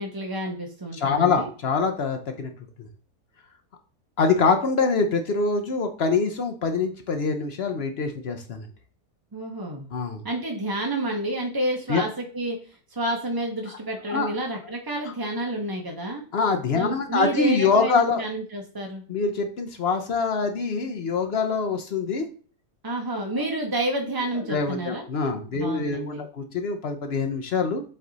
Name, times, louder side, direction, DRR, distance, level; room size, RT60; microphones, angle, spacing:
voice 1, 0.0-1.5 9.3-9.9 10.2-16.2 16.7-19.0 22.8-25.0 25.5-26.3, right 1 dB, 30° right, 2 dB, 0.4 m, -30 dB
voice 2, 0.9-2.5 2.8-2.9 4.2-8.7 9.9-10.2 11.9-12.0 14.1-14.3 16.3-18.2 19.1-22.3 24.5-27.8, left 4 dB, 55° left, 6 dB, 0.7 m, -24 dB
7.6 x 3.3 x 3.9 m, 0.40 s
omnidirectional pair, 1.7 m